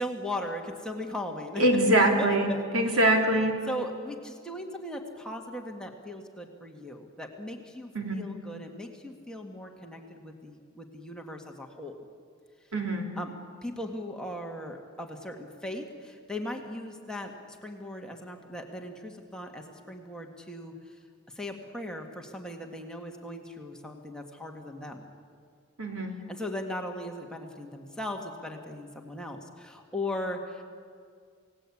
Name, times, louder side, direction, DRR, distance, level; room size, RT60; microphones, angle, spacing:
voice 1, 0.0-1.6 1.9-3.0 3.7-12.0 13.2-13.3 13.6-21.0 21.4-25.0 26.3-30.6, left 1 dB, 5° left, 1 dB, 1.8 m, -38 dB
voice 2, 1.6-3.5 7.9-8.2 12.7-13.1 25.8-26.1, right 1 dB, 75° right, 2 dB, 3.4 m, -23 dB
28.5 x 18.0 x 8.6 m, 2.1 s
head